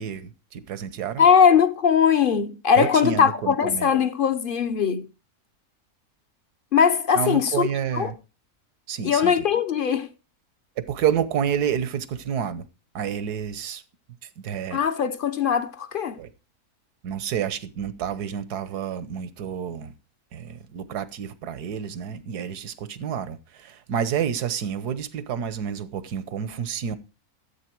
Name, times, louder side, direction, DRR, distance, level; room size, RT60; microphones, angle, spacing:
voice 1, 0.0-1.3 2.8-3.9 7.1-8.1 8.9-9.5 10.8-12.6 12.9-13.8 14.2-14.8 16.2-16.3 17.0-19.9 20.3-27.0, right 8 dB, 85° right, 1.5 m, -29 dB
voice 2, 1.2-5.1 6.7-7.7 7.9-8.1 9.0-10.1 14.7-16.2, left 7 dB, 40° left, 0.9 m, -20 dB
13.5 x 8.3 x 4.6 m
omnidirectional pair, 1.6 m